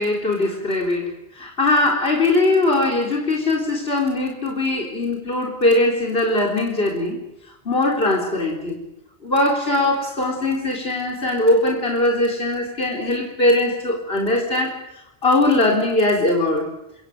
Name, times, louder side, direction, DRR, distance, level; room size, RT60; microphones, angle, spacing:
voice 1, 0.0-7.2 7.7-8.8 9.2-14.8 15.2-16.7, left 2 dB, 75° left, -1 dB, 4.2 m, -20 dB
28.0 x 26.0 x 6.7 m, 0.87 s
omnidirectional pair, 1.0 m